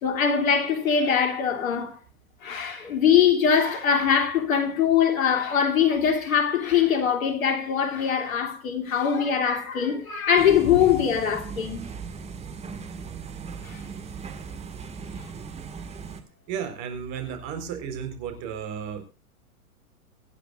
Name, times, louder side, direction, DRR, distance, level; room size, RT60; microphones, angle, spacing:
voice 1, 0.0-2.0 2.4-11.9 13.6-13.8, left 7 dB, 65° left, 3.2 m, -22 dB
sound 1, 10.4-16.2, right 5 dB, 15° right, 1.9 m, -38 dB
voice 2, 16.5-19.1, right 7 dB, 40° right, 4.3 m, -33 dB
24.5 x 10.0 x 2.5 m
hypercardioid pair, 115°, 44 cm